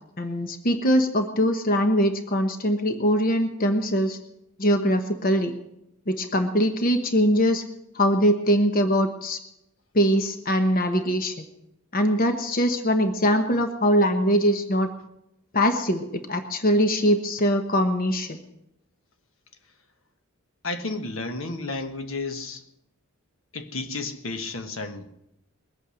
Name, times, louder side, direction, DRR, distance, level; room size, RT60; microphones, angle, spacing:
voice 1, 0.2-4.2 4.6-5.5 6.1-7.6 7.9-9.4 9.9-11.5 11.9-14.9 15.5-18.4, equal, 45° left, 1.1 m, -22 dB
voice 2, 20.6-22.6 23.5-25.1, left 3 dB, 70° left, 1.3 m, -32 dB
21.5 x 8.6 x 6.3 m
head